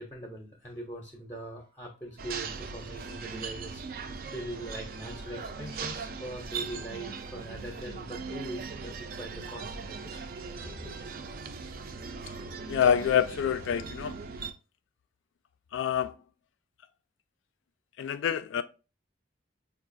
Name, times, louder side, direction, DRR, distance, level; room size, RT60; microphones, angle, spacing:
voice 1, 0.0-10.3 10.6-10.9, right 1 dB, 15° left, 0.5 m, -42 dB
sound 1, 2.2-14.5, right 5 dB, 50° right, 0.3 m, -39 dB
voice 2, 12.7-14.2 15.7-16.1 18.0-18.6, left 8 dB, 85° left, 0.3 m, -26 dB
4.5 x 2.4 x 2.5 m
head